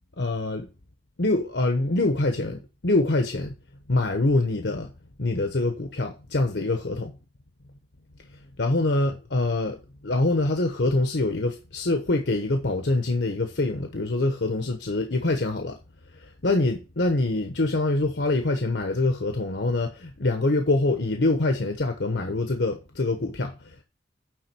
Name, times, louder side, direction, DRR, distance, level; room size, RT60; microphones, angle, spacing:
voice 1, 0.2-0.7 1.2-3.5 3.9-4.9 5.2-7.2 8.3-15.8 16.1-23.8, left 2 dB, 80° left, 1.0 m, -25 dB
9.6 x 3.8 x 6.1 m
head